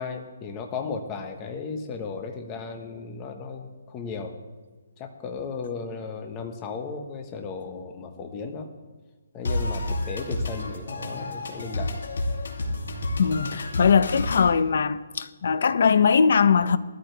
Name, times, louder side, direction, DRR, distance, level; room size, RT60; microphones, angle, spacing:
voice 1, 0.0-4.3 5.0-8.7 9.3-11.9, left 5 dB, 20° left, 1.2 m, -35 dB
sound 1, 9.5-14.4, left 2 dB, 75° left, 2.7 m, -30 dB
voice 2, 13.2-16.8, left 6 dB, 55° left, 0.7 m, -20 dB
19.5 x 13.5 x 3.4 m
hypercardioid pair, 170°, 0 cm